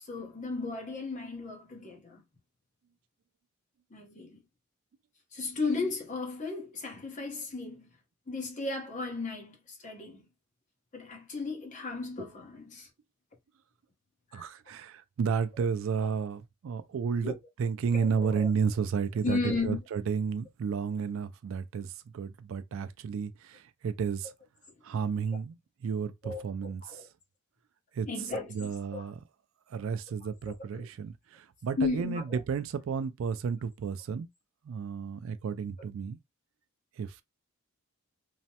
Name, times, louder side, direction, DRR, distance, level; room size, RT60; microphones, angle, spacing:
voice 1, 0.0-2.2 3.9-4.4 5.3-7.9 8.3-10.3 10.9-12.9 14.3-14.5 15.9-16.1 17.2-17.4 17.9-18.5 19.2-19.8 26.2-26.4 26.8-27.1 28.0-29.1 30.7-30.9 31.8-32.4, left 3 dB, 35° left, 0.8 m, -35 dB
voice 2, 14.3-24.3 24.8-27.1 27.9-28.1 28.5-29.2 29.7-34.3 34.6-36.2 37.0-37.2, right 6 dB, 65° right, 0.3 m, -32 dB
3.2 x 2.0 x 2.8 m
head